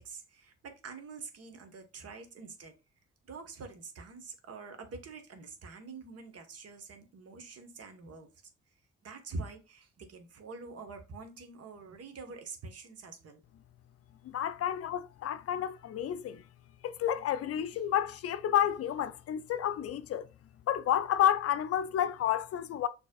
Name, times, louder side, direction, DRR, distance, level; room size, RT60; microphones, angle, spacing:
voice 1, 0.0-2.7 3.3-8.3 9.0-13.4 14.6-14.7, right 4 dB, 55° right, 1.3 m, -46 dB
voice 2, 14.2-16.4 16.8-20.3 20.7-22.9, left 10 dB, 55° left, 0.5 m, -30 dB
6.2 x 3.3 x 2.3 m
hypercardioid pair, 50°, 29 cm